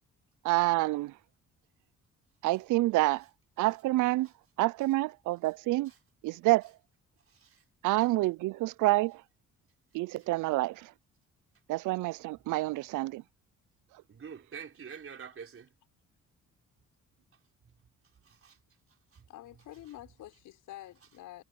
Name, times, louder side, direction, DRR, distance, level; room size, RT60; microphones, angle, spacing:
voice 1, 0.4-1.1 2.4-3.3 3.6-4.3 4.6-5.9 6.2-6.7 7.8-9.2 9.9-10.9 11.7-13.2, right 19 dB, 80° right, 0.5 m, -28 dB
voice 2, 14.1-15.7 18.2-18.6 19.1-19.2, right 7 dB, 45° right, 4.3 m, -46 dB
voice 3, 19.3-21.4, left 14 dB, 85° left, 5.8 m, -48 dB
cardioid pair, 90°, 30 cm